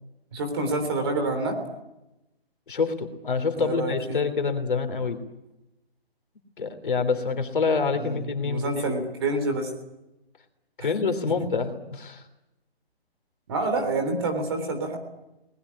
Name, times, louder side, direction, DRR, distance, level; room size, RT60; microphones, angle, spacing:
voice 1, 0.3-1.6 3.6-4.2 7.9-9.7 13.5-15.0, right 2 dB, 25° right, 5 dB, 3.5 m, -27 dB
voice 2, 2.7-5.2 6.6-8.9 10.8-12.2, left 4 dB, 55° left, 8 dB, 3.3 m, -26 dB
23.0 x 20.0 x 9.8 m, 0.92 s
hypercardioid pair, 175°, 31 cm